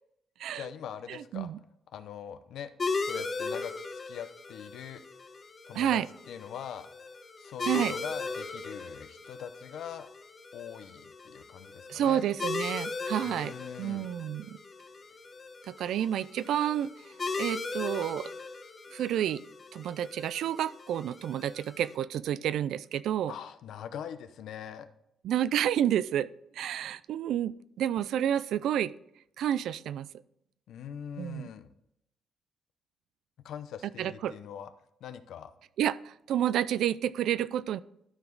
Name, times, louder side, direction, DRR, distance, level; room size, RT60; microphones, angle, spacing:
voice 1, 0.5-1.5 1.9-2.7 3.0-3.7 4.1-5.0 5.7-6.0 6.3-6.9 7.4-10.1 10.5-12.2 13.2-14.1 23.3-24.9 30.7-31.7 33.4-34.7 35.0-35.5, left 9 dB, 75° left, 11 dB, 0.7 m, -42 dB
voice 2, 1.1-1.6 5.8-6.1 7.6-8.0 11.9-14.6 15.7-16.9 17.4-18.3 18.9-19.4 19.7-23.3 25.2-26.3 26.6-28.9 29.4-30.1 31.2-31.5 34.0-34.3 35.8-37.8, right 10 dB, 75° right, 18 dB, 0.3 m, -30 dB
sound 1, 2.8-21.9, left 4 dB, 35° left, 1.0 m, -38 dB
12.5 x 4.9 x 3.9 m, 0.78 s
cardioid pair, 90°, 0 cm